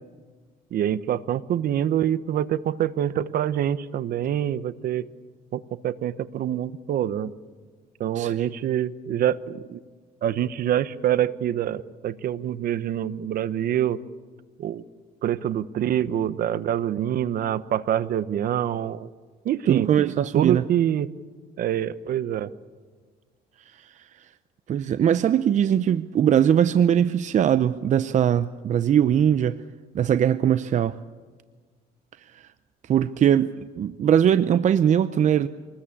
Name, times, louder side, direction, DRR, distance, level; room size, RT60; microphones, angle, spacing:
voice 1, 0.7-5.1 5.5-7.3 8.0-9.8 10.2-14.0 14.6-14.8 15.2-19.1 19.4-19.9 20.3-21.1 21.6-22.5, right 10 dB, 60° right, 15 dB, 1.1 m, -25 dB
voice 2, 8.1-8.5 19.7-20.7 23.8-24.1 24.7-29.6 29.9-31.0 32.3-32.5 32.9-35.5, right 9 dB, 45° right, 13 dB, 0.7 m, -21 dB
26.0 x 20.5 x 8.6 m, 1.5 s
cardioid pair, 110°, 17 cm